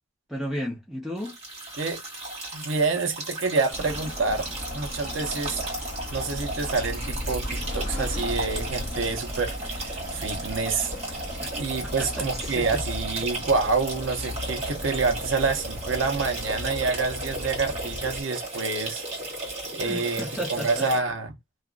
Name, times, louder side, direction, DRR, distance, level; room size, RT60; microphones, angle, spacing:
voice 1, 0.3-1.4 11.4-11.6 11.8-12.6 19.8-20.9, equal, ahead, 0.6 m, -34 dB
sound 1, 1.2-21.0, right 2 dB, 35° right, 1.9 m, -35 dB
voice 2, 2.5-5.6 6.1-11.2 11.5-19.0 19.7-21.3, right 4 dB, 70° right, 0.7 m, -28 dB
sound 2, 3.7-18.2, left 1 dB, 40° left, 1.1 m, -36 dB
2.9 x 2.4 x 2.3 m
head